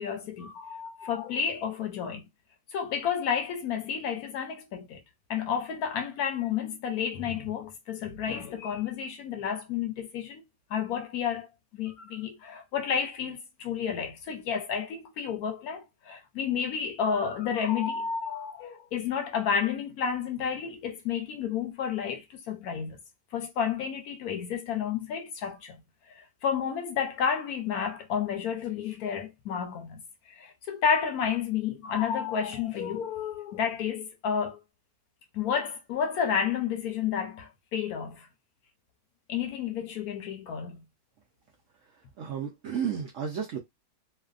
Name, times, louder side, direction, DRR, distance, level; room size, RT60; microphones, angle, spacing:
voice 1, 0.0-2.3 2.7-5.0 5.3-10.4 10.7-23.0 23.3-25.8 26.1-30.0 30.3-34.6 35.3-38.3 39.3-40.8, left 7 dB, 70° left, 1.0 m, -31 dB
voice 2, 42.2-43.6, right 7 dB, 70° right, 0.7 m, -32 dB
3.1 x 2.2 x 2.4 m
omnidirectional pair, 1.8 m